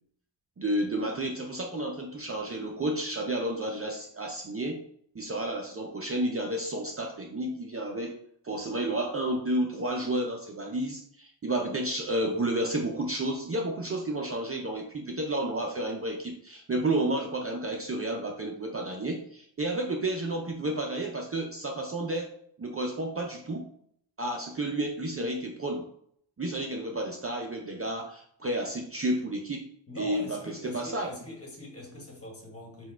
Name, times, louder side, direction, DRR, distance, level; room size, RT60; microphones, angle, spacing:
voice 1, 0.6-4.8 5.1-8.1 8.4-22.3 22.6-23.7 24.2-25.9 26.4-29.7 30.0-31.1, right 1 dB, 30° right, 1 dB, 0.5 m, -31 dB
voice 2, 29.9-32.9, left 1 dB, 30° left, -1 dB, 1.3 m, -42 dB
4.3 x 2.3 x 4.3 m, 0.66 s
wide cardioid pair, 130°, 46 cm